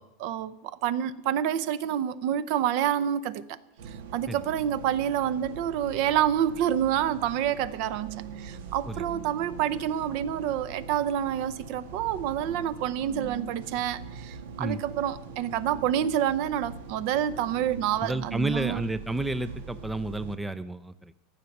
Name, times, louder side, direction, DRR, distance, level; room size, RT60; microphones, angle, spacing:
voice 1, 0.0-3.6 3.9-18.8, right 10 dB, 55° right, 0.6 m, -28 dB
sound 1, 3.8-20.4, right 6 dB, 85° right, 1.4 m, -42 dB
voice 2, 18.0-21.1, right 2 dB, 5° right, 0.4 m, -31 dB
14.5 x 5.9 x 9.2 m
supercardioid pair, 155°, 0 cm